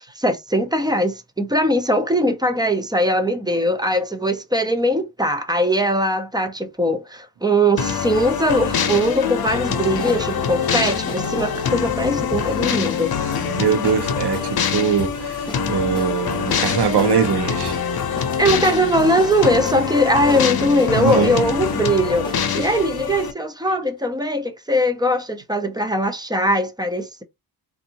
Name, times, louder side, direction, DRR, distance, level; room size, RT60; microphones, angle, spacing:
voice 1, 0.0-13.1 18.4-27.2, equal, 10° right, 0.4 m, -20 dB
sound 1, 7.8-23.3, left 7 dB, 65° left, 0.7 m, -24 dB
sound 2, 9.8-22.5, left 2 dB, 10° left, 1.0 m, -37 dB
voice 2, 13.5-17.8 21.0-21.4, right 7 dB, 85° right, 0.8 m, -22 dB
3.5 x 2.5 x 2.8 m
wide cardioid pair, 145°, 39 cm